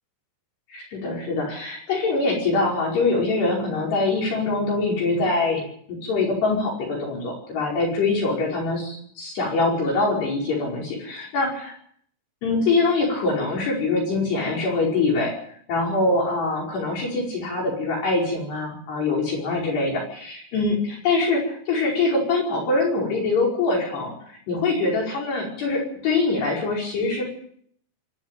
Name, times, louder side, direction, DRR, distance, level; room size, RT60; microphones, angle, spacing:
voice 1, 0.7-5.6 5.9-11.7 12.4-15.3 15.7-27.2, left 3 dB, 60° left, -3 dB, 7.2 m, -24 dB
25.5 x 11.5 x 9.0 m, 0.65 s
omnidirectional pair, 5.4 m